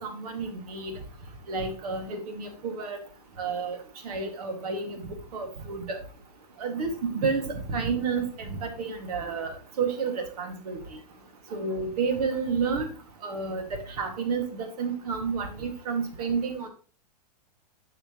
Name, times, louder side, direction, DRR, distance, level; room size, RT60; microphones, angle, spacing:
voice 1, 0.0-1.0 1.5-3.0 3.4-3.8 4.0-5.0 5.3-6.0 6.6-11.0 11.5-12.9 13.2-16.7, right 5 dB, 65° right, 5 dB, 1.9 m, -30 dB
9.7 x 5.8 x 3.0 m, 0.38 s
hypercardioid pair, 105°, 21 cm